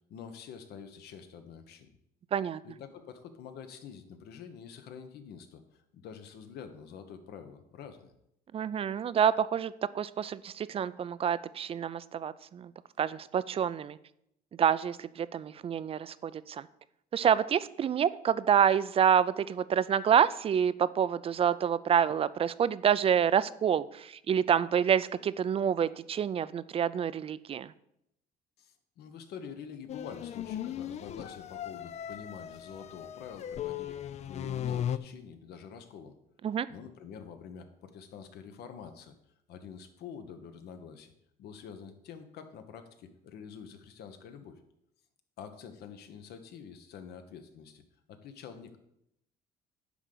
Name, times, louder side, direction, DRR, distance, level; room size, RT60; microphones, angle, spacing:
voice 1, 0.1-1.9 2.6-8.1 28.6-34.0 34.2-36.2 36.7-39.1 39.5-41.1 41.4-44.6 45.4-47.8 48.1-48.8, left 7 dB, 75° left, 8 dB, 1.1 m, -47 dB
voice 2, 8.5-12.7 13.0-14.0 14.6-16.7 17.1-27.7 36.4-36.7, right 8 dB, 35° right, 17 dB, 0.4 m, -27 dB
sound 1, 29.9-35.0, left 10 dB, 40° left, 0.4 m, -37 dB
10.0 x 3.8 x 6.7 m, 0.78 s
cardioid pair, 110°, 17 cm